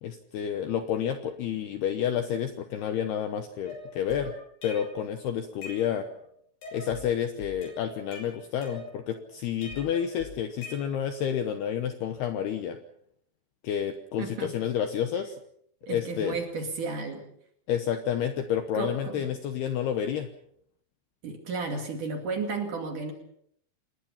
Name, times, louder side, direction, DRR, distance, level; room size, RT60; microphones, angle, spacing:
voice 1, 0.0-4.3 4.6-6.1 6.7-12.8 13.6-15.4 15.9-16.4 17.7-20.3, left 9 dB, 70° left, 8 dB, 2.5 m, -30 dB
sound 1, 3.7-5.1 5.4-6.2 6.6-7.1 7.4-9.2 9.6-11.2, left 3 dB, 55° left, 8.1 m, -44 dB
voice 2, 14.2-14.5 15.9-17.2 18.7-19.3 21.2-23.1, right 3 dB, 45° right, 4 dB, 3.3 m, -33 dB
28.0 x 20.0 x 5.8 m, 0.68 s
omnidirectional pair, 5.8 m